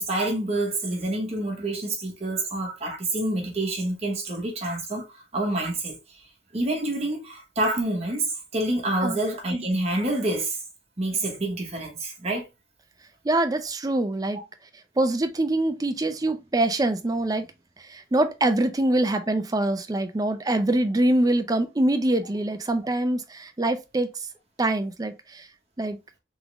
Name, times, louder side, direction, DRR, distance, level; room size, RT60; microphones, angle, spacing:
voice 1, 0.0-6.0 6.5-10.6 11.0-12.5, right 2 dB, 35° right, 1.0 m, -27 dB
voice 2, 13.2-14.4 15.0-17.5 17.9-24.1 24.6-25.4 25.8-26.0, right 1 dB, 20° right, 0.5 m, -24 dB
3.6 x 3.5 x 2.3 m
head